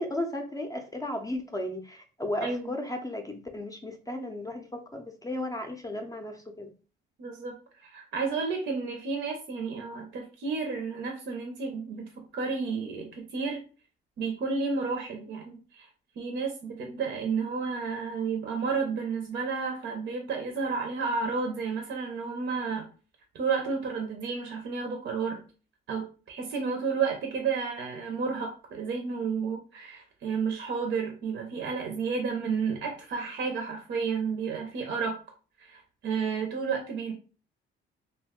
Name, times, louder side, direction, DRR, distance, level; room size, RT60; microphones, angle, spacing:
voice 1, 0.0-6.7, left 1 dB, 20° left, 0.5 m, -35 dB
voice 2, 2.4-2.7 7.2-13.6 14.2-15.9 16.2-22.9 23.3-25.4 25.9-35.2 35.6-37.1, right 5 dB, 70° right, 0.7 m, -31 dB
2.6 x 2.2 x 3.6 m
cardioid pair, 90°, 20 cm